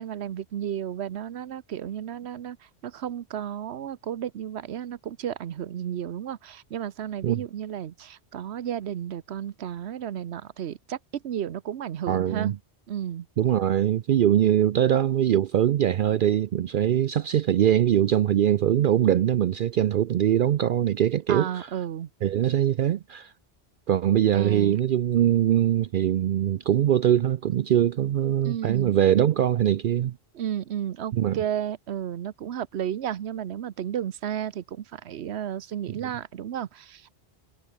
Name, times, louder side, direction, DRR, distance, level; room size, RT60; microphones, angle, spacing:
voice 1, 0.0-2.6 2.8-12.5 12.9-13.3 21.3-22.1 24.3-24.8 28.4-29.0 30.3-37.1, right 10 dB, 80° right, 1.0 m, -33 dB
voice 2, 12.1-12.6 13.4-21.7 22.2-23.3 23.9-30.1 31.1-31.4 36.0-36.1, right 11 dB, 60° right, 0.6 m, -22 dB
omnidirectional pair, 1.1 m